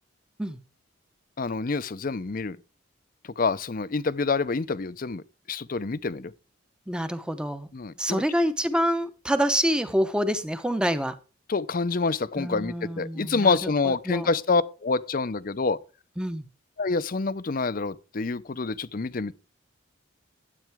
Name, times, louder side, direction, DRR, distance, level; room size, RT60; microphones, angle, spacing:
voice 1, 1.4-2.6 3.4-6.3 7.7-8.2 11.5-15.8 16.8-19.3, left 4 dB, 45° left, 0.6 m, -27 dB
voice 2, 6.9-7.7 8.0-11.2 12.4-14.3 16.2-16.5, equal, 5° right, 0.8 m, -27 dB
12.0 x 8.5 x 3.5 m
head